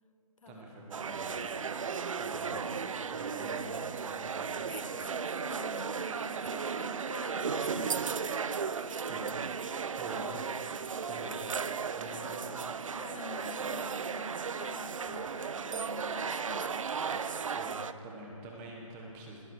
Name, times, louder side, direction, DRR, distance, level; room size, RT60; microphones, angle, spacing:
voice 1, 0.5-1.6 2.2-2.8 3.1-4.5 9.1-9.2 10.0-11.4 11.9-12.6 15.0-15.4 17.5-19.4, right 2 dB, 15° right, -1 dB, 1.3 m, -45 dB
sound 1, 0.9-17.9, right 6 dB, 65° right, 0.6 m, -35 dB
voice 2, 4.8-9.2 12.9-17.0 17.4-17.6, left 4 dB, 70° left, 12 dB, 0.8 m, -47 dB
20.0 x 9.5 x 4.9 m, 2.7 s
hypercardioid pair, 165°, 18 cm